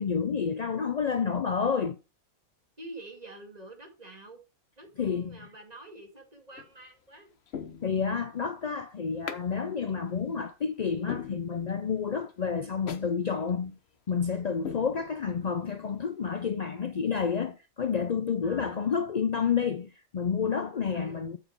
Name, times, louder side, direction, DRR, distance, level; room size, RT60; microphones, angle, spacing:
voice 1, 0.0-2.0 5.0-5.5 7.8-13.8 14.1-21.4, left 6 dB, 75° left, 0.3 m, -29 dB
voice 2, 2.8-4.4 4.8-7.6 18.4-18.8 20.9-21.3, right 2 dB, 30° right, 2.2 m, -47 dB
sound 1, 6.5-6.9 7.5-8.4 9.3-9.5 9.9-10.0 10.5-10.6 11.1-12.0 12.3-12.4 12.9-13.1 13.5-13.6 14.1-14.2 14.6-15.5 15.9-16.0, left 7 dB, 50° left, 1.1 m, -41 dB
8.3 x 7.3 x 4.6 m
omnidirectional pair, 1.5 m